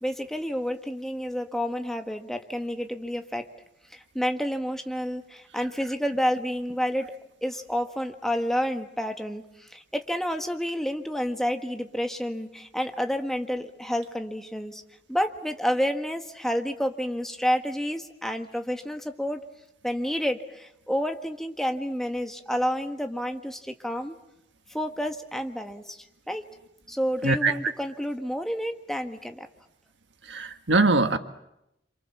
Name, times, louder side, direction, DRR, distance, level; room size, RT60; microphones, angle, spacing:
voice 1, 0.0-3.5 3.9-7.1 7.4-14.8 15.1-19.4 19.8-24.2 24.7-26.4 26.9-29.5, equal, ahead, 5 dB, 1.6 m, -29 dB
voice 2, 30.3-31.2, right 3 dB, 85° right, 8 dB, 1.7 m, -22 dB
28.5 x 27.0 x 7.3 m, 0.83 s
head